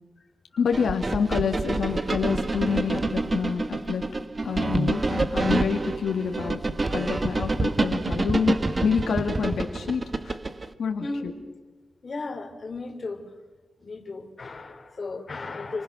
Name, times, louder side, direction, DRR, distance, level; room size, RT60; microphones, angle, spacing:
voice 1, 0.6-4.1 4.4-10.4 10.8-11.3, left 6 dB, 85° left, 4 dB, 2.0 m, -27 dB
sound 1, 0.7-10.7, right 2 dB, 30° right, 1.2 m, -27 dB
voice 2, 11.0-11.3 12.0-13.2 13.8-15.8, left 3 dB, 40° left, 4 dB, 3.6 m, -35 dB
28.0 x 26.0 x 6.2 m, 1.2 s
wide cardioid pair, 110°, 0 cm